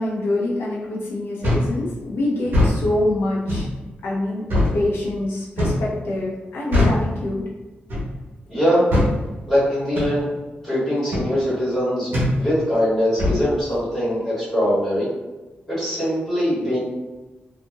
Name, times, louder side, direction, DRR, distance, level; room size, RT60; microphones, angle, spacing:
voice 1, 0.0-3.7 4.0-7.4, left 1 dB, 85° left, -4 dB, 0.8 m, -25 dB
sound 1, 1.4-1.7 2.4-2.8 3.5-3.7 4.5-4.7 5.6-5.9 6.7-7.0 7.9-8.1 8.9-9.1 9.9-10.1 11.1-11.3 12.1-12.3 13.2-13.4, left 1 dB, 65° right, 1.2 m, -20 dB
voice 2, 8.5-8.8 9.5-10.3 10.6-15.1 15.7-16.8, equal, 10° left, -12 dB, 1.5 m, -22 dB
2.8 x 2.5 x 2.5 m, 1.1 s
wide cardioid pair, 170°, 4 cm